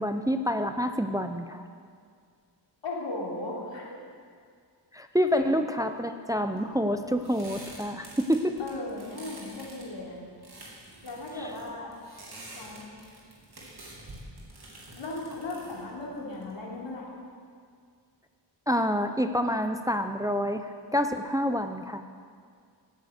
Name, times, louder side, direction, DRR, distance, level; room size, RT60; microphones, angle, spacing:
voice 1, 0.0-1.7 4.9-8.5 11.4-11.5 18.7-22.0, equal, 10° right, 7 dB, 0.7 m, -27 dB
voice 2, 2.8-4.0 5.3-5.5 8.6-10.2 11.0-11.9 12.6-13.0 14.9-17.1, left 2 dB, 80° left, -4 dB, 3.7 m, -37 dB
sound 1, 6.5-16.9, right 1 dB, 60° right, 3.6 m, -48 dB
16.5 x 9.6 x 6.6 m, 2.1 s
wide cardioid pair, 85°, 44 cm